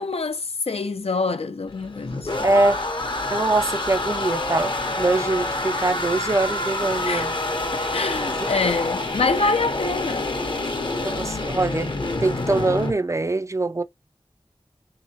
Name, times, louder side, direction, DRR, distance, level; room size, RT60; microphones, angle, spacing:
voice 1, 0.0-2.5 7.1-7.3 7.7-10.3, left 3 dB, 80° left, 0.5 m, -26 dB
sound 1, 1.7-12.9, left 2 dB, 50° left, 0.7 m, -27 dB
voice 2, 2.4-2.8 3.3-7.3 8.3-8.5 11.0-13.8, right 2 dB, 30° right, 0.3 m, -23 dB
3.5 x 2.8 x 2.8 m
wide cardioid pair, 60°, 10 cm